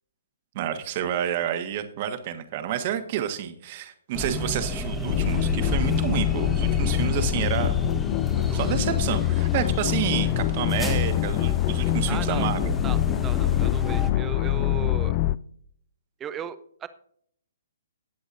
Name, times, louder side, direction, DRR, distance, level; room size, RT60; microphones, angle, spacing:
voice 1, 0.5-7.7 8.5-12.8, right 10 dB, 45° right, 9 dB, 1.3 m, -29 dB
sound 1, 4.1-14.1, left 1 dB, 10° left, 1.3 m, -31 dB
sound 2, 5.1-15.4, left 16 dB, 35° left, 0.3 m, -25 dB
voice 2, 8.3-8.8 9.2-9.4 12.1-12.5 12.8-15.2 16.2-16.9, right 8 dB, 20° right, 13 dB, 0.7 m, -37 dB
19.5 x 7.8 x 2.6 m, 0.64 s
figure-of-eight pair, 130°, 0 cm